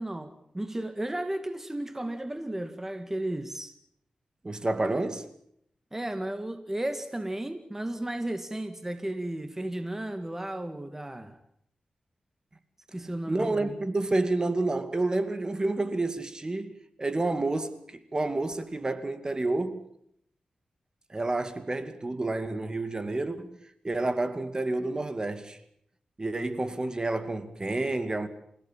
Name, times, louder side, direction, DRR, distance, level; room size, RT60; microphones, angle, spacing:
voice 1, 0.0-3.8 5.9-11.4 12.9-13.8, right 1 dB, 15° right, 2.1 m, -34 dB
voice 2, 4.4-5.3 13.0-19.8 21.1-23.6 23.8-25.6 26.2-28.3, right 2 dB, 30° right, 2.3 m, -29 dB
29.0 x 16.5 x 7.5 m
cardioid pair, 70°, 2 cm